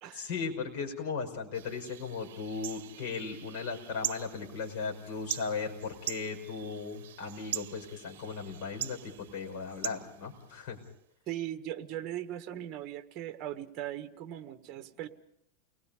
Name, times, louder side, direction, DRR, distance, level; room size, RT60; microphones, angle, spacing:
voice 1, 0.1-10.8, left 5 dB, 55° left, 1 dB, 5.7 m, -37 dB
sound 1, 1.5-10.9, right 12 dB, 85° right, 0.8 m, -42 dB
voice 2, 11.3-15.1, right 12 dB, 40° right, 9 dB, 1.6 m, -39 dB
30.0 x 20.5 x 5.2 m, 0.72 s
supercardioid pair, 145°, 0 cm